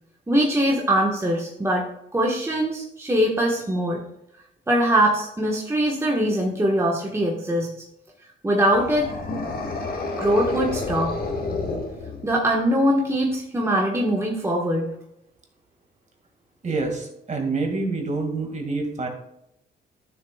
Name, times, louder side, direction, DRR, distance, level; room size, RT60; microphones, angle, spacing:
voice 1, 0.3-4.1 4.7-7.7 8.4-9.1 10.2-11.2 12.2-14.9, right 1 dB, 15° right, -1 dB, 1.3 m, -22 dB
sound 1, 8.7-12.6, left 3 dB, 50° left, 1.7 m, -30 dB
voice 2, 16.6-19.1, right 3 dB, 35° right, 3 dB, 2.0 m, -27 dB
11.5 x 6.8 x 2.3 m, 0.79 s
cardioid pair, 90°, 20 cm